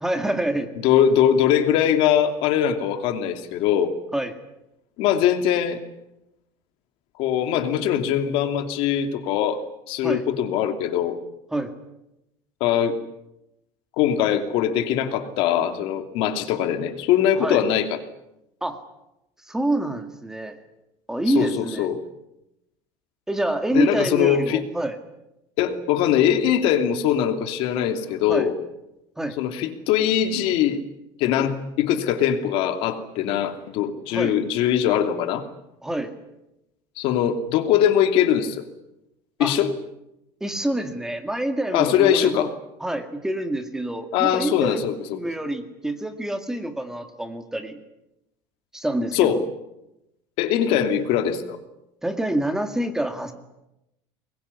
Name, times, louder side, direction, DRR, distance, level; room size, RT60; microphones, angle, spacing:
voice 1, 0.0-0.7 4.1-4.3 10.0-10.2 11.5-11.7 17.4-17.6 18.6-18.8 19.5-20.6 21.1-21.9 23.3-25.0 28.3-28.5 29.2-29.4 34.1-34.4 35.8-36.1 39.4-39.6 40.4-42.5 42.8-44.8 45.2-47.8 48.7-49.4 52.0-53.3, right 1 dB, 5° right, 7 dB, 2.1 m, -26 dB
voice 2, 0.8-3.9 5.0-5.8 7.2-9.6 9.9-11.2 12.6-13.0 14.0-18.0 21.3-22.0 23.7-24.6 25.6-28.6 29.4-30.8 31.2-35.5 37.0-38.6 39.4-39.7 41.7-42.5 44.1-45.2 49.1-49.4 50.4-51.6, left 9 dB, 60° left, 7 dB, 2.9 m, -21 dB
24.5 x 21.5 x 9.8 m, 0.90 s
cardioid pair, 160°, 10 cm